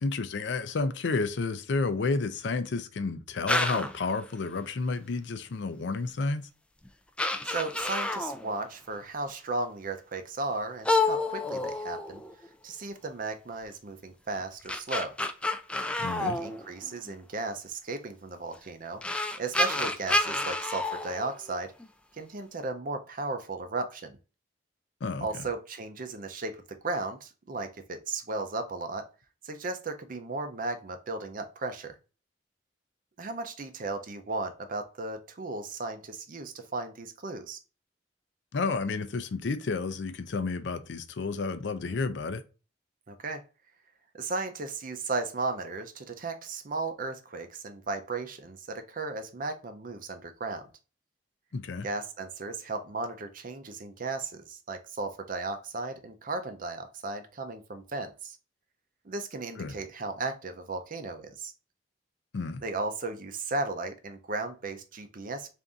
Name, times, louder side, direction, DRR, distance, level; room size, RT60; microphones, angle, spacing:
voice 1, 0.0-6.5 16.0-16.4 25.0-25.4 38.5-42.4 51.5-51.9 59.6-59.7 62.3-62.6, left 4 dB, 75° left, 0.5 m, -31 dB
sound 1, 3.5-4.0 6.1-6.2 6.8-6.9 7.2-8.5 10.8-12.5 14.4-17.1 18.5-18.6 19.0-21.9, left 2 dB, 5° left, 0.3 m, -29 dB
voice 2, 7.4-12.2 12.6-15.1 16.2-19.0 19.4-21.7 22.1-24.2 25.2-29.1 29.4-32.0 33.2-37.6 43.1-43.4 44.1-50.7 51.8-58.4 59.0-61.5 62.6-65.5, right 3 dB, 50° right, 0.6 m, -35 dB
3.5 x 2.6 x 3.8 m
head